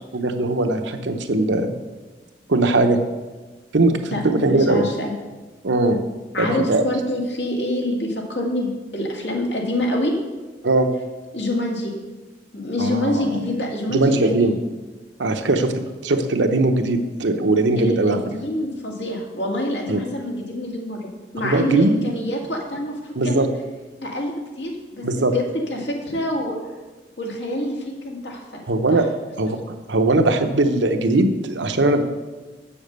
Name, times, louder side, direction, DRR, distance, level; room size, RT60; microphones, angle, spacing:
voice 1, 0.1-1.7 2.5-3.0 3.7-4.9 5.6-6.0 6.4-6.8 10.6-10.9 12.8-13.3 13.9-14.6 15.2-18.2 19.9-20.0 21.4-21.9 23.2-23.5 25.0-25.3 28.7-29.0 29.4-29.6 29.9-32.0, right 2 dB, 85° right, 6 dB, 0.9 m, -20 dB
voice 2, 4.5-5.1 6.3-10.1 11.3-11.9 12.5-14.6 17.8-23.4 24.0-26.6 27.2-28.6 28.9-29.0 29.5-29.6, left 1 dB, 70° left, -1 dB, 2.1 m, -26 dB
7.2 x 7.2 x 6.7 m, 1.3 s
head